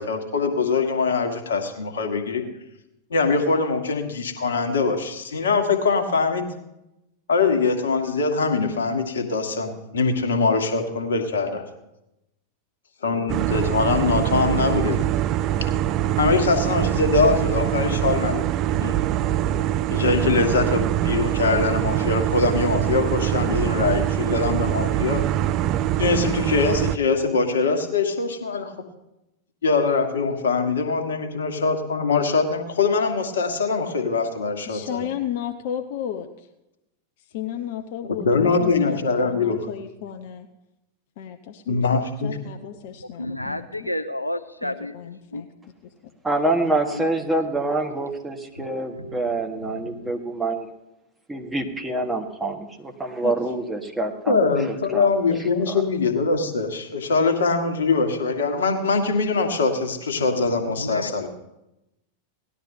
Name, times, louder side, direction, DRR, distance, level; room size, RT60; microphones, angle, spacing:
voice 1, 0.0-2.4 3.1-6.5 7.3-11.6 13.0-15.1 16.2-19.0 19.9-25.3 26.0-28.7 29.6-35.1 38.0-39.7 41.7-42.4 54.3-61.3, left 4 dB, 65° left, 5 dB, 1.5 m, -23 dB
sound 1, 13.3-27.0, right 12 dB, 35° right, 0.4 m, -23 dB
voice 2, 34.7-36.5 37.3-40.5 41.2-41.8 42.2-43.9 44.6-45.5 53.2-53.3, left 9 dB, 50° left, 6 dB, 0.7 m, -33 dB
voice 3, 43.0-44.9 45.3-45.4 46.9-47.1 48.5-50.1 60.2-61.3, left 1 dB, 85° left, 9 dB, 0.4 m, -32 dB
voice 4, 46.2-50.7 51.3-55.8, right 2 dB, 10° right, 2 dB, 1.6 m, -26 dB
18.5 x 11.5 x 2.8 m, 0.90 s
figure-of-eight pair, 90°, 0 cm